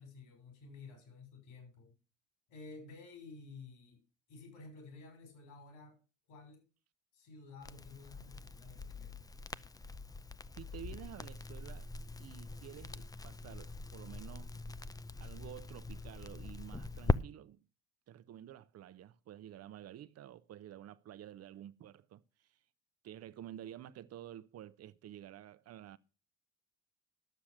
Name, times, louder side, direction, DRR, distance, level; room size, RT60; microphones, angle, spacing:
voice 1, 0.0-1.9 2.5-4.0 4.3-6.0 6.3-6.6 7.1-9.2, left 4 dB, 70° left, 6.0 m, -53 dB
Crackle, 7.6-17.2, left 3 dB, 10° left, 0.5 m, -41 dB
voice 2, 10.6-11.9 12.2-14.6 15.2-17.7 18.1-22.6 23.0-26.0, right 11 dB, 50° right, 0.9 m, -51 dB
12.0 x 7.1 x 6.5 m
hypercardioid pair, 65°, 33 cm